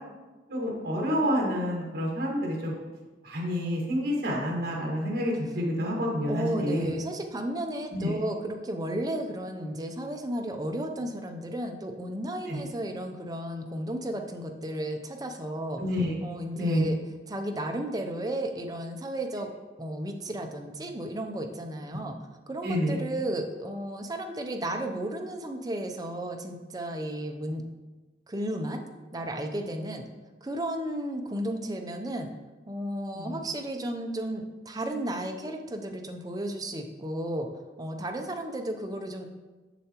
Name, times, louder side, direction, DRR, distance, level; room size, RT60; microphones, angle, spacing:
voice 1, 0.5-2.7 3.2-6.9 7.9-8.2 12.5-12.6 15.8-16.1 16.5-16.9 21.9-22.0 22.6-23.0 33.1-33.4, equal, 55° right, -3 dB, 1.6 m, -28 dB
voice 2, 6.3-15.8 16.2-17.0 17.3-19.5 19.8-22.1 22.5-27.6 28.3-28.8 29.1-30.0 30.4-32.3 32.7-37.5 37.8-39.3, right 1 dB, 20° right, 4 dB, 0.5 m, -33 dB
6.9 x 6.6 x 2.9 m, 1.2 s
head